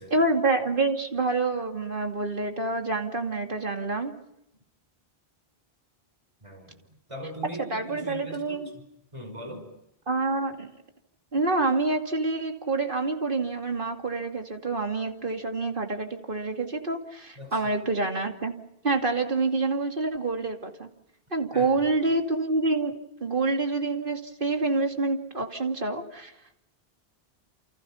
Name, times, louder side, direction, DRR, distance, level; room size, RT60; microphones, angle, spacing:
voice 1, 0.1-4.1 7.6-8.7 10.1-10.7 11.3-18.5 18.8-20.9 21.3-22.9 23.2-26.3, right 3 dB, 55° right, 4 dB, 2.7 m, -27 dB
voice 2, 6.4-6.8 7.1-8.8 9.1-9.7 17.4-17.6 21.5-21.9, equal, 30° right, 5 dB, 5.6 m, -40 dB
29.0 x 29.0 x 5.7 m, 0.82 s
omnidirectional pair, 1.0 m